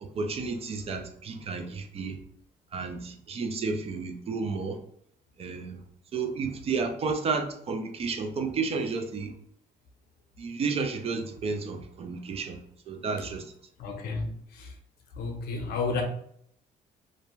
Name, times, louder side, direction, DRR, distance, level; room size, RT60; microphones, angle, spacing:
voice 1, 0.0-2.2 2.7-4.8 5.4-5.8 6.1-9.3 10.4-12.6 12.9-13.5, right 4 dB, 35° right, 6 dB, 0.4 m, -32 dB
voice 2, 13.8-14.7 15.2-16.0, left 4 dB, 70° left, 4 dB, 0.6 m, -32 dB
2.5 x 2.1 x 3.0 m, 0.67 s
cardioid pair, 110°, 17 cm